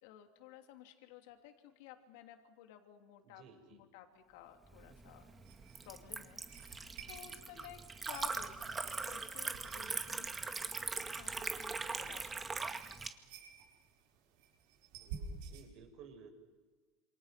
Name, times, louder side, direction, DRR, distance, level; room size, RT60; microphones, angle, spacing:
voice 1, 0.0-3.4 3.7-5.3 5.8-12.4 12.7-12.8, left 10 dB, 75° left, 5 dB, 3.1 m, -55 dB
voice 2, 3.2-3.8 15.0-16.3, right 6 dB, 50° right, 5 dB, 6.3 m, -56 dB
Liquid, 4.7-13.1, right 4 dB, 15° right, 1.9 m, -41 dB
sound 1, 4.9-15.7, right 5 dB, 75° right, 7.6 m, -53 dB
28.0 x 27.5 x 6.1 m, 1.3 s
supercardioid pair, 140°, 0 cm